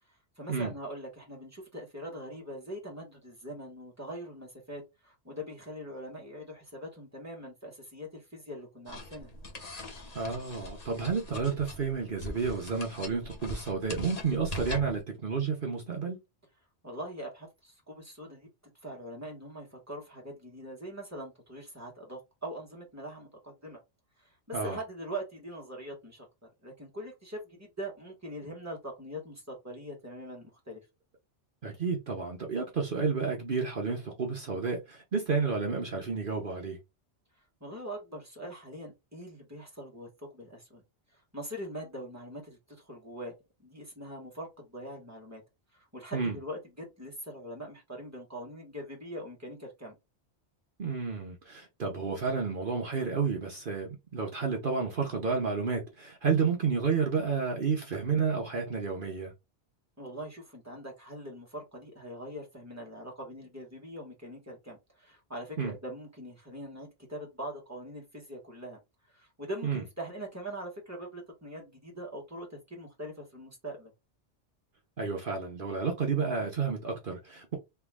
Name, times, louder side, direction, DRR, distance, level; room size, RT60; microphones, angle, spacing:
voice 1, 0.4-9.3 16.8-18.5 18.8-23.8 24.2-26.3 26.6-30.8 37.6-40.8 41.3-43.3 43.6-45.4 45.7-49.9 60.0-68.8 69.1-73.9, equal, 15° right, 1.7 m, -42 dB
sound 1, 8.9-15.0, left 1 dB, 40° left, 0.9 m, -42 dB
voice 2, 10.1-16.2 24.5-24.8 31.6-36.8 46.1-46.4 50.8-59.3 65.6-65.7 69.6-69.8 75.0-77.6, right 5 dB, 50° right, 1.0 m, -31 dB
3.6 x 3.0 x 3.5 m
omnidirectional pair, 1.2 m